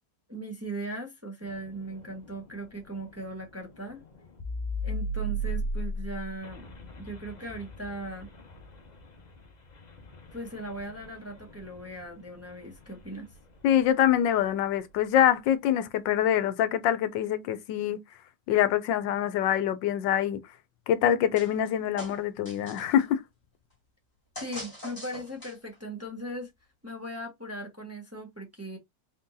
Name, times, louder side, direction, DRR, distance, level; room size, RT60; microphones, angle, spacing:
voice 1, 0.3-4.0 4.8-6.7 7.0-8.3 10.3-13.3 24.4-26.5 26.8-28.8, right 1 dB, 10° right, 1.0 m, -38 dB
sound 1, 1.4-14.1, right 1 dB, 40° left, 0.6 m, -38 dB
voice 2, 13.6-18.0 18.5-20.4 20.9-23.2, left 10 dB, 80° left, 1.3 m, -25 dB
sound 2, 21.3-21.7 22.0-23.0 24.3-25.8, left 1 dB, 10° left, 1.6 m, -43 dB
4.2 x 3.7 x 2.7 m
omnidirectional pair, 2.0 m